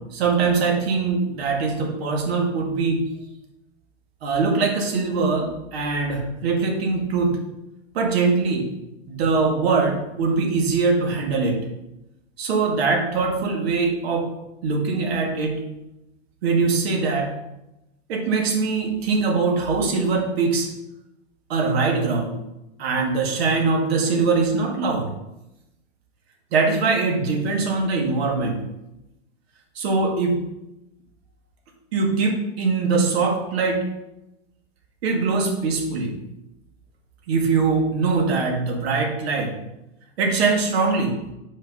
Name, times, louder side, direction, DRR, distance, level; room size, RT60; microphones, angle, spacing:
voice 1, 0.0-3.0 4.2-7.4 7.9-8.7 9.1-11.6 12.4-14.3 14.6-15.6 16.4-17.3 18.1-20.7 21.5-22.3 22.8-25.1 26.5-28.6 29.8-30.4 31.9-33.8 35.0-36.2 37.3-39.5 40.2-41.2, right 4 dB, 60° right, 1 dB, 2.0 m, -22 dB
5.6 x 5.1 x 5.5 m, 0.92 s
supercardioid pair, 155°, 36 cm